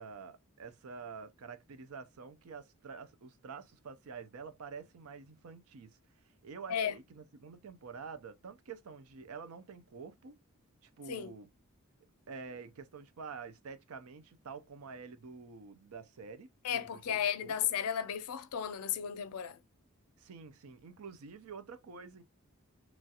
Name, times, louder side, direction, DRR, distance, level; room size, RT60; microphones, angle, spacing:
voice 1, 0.0-6.0 6.4-10.4 10.8-11.5 12.3-17.6 20.2-22.2, right 5 dB, 75° right, 0.5 m, -48 dB
voice 2, 16.6-19.6, left 9 dB, 85° left, 0.4 m, -34 dB
3.0 x 2.3 x 2.8 m
head